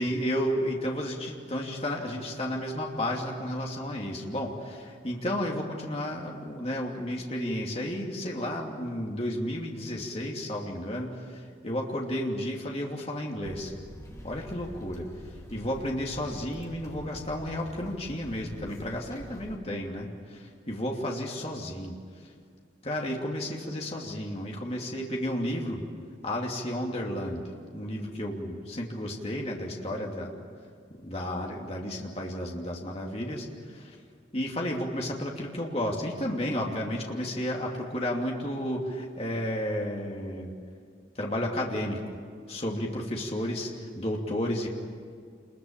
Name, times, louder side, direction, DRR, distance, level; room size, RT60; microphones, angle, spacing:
voice 1, 0.0-13.7 14.2-15.1 15.5-22.0 22.8-25.8 26.2-27.5 27.7-30.4 31.0-33.9 34.3-40.5 41.2-42.2 42.5-44.7, equal, 35° left, -1 dB, 2.8 m, -32 dB
sound 1, 13.4-19.6, equal, 15° left, 2.6 m, -46 dB
27.5 x 22.0 x 9.0 m, 2.1 s
head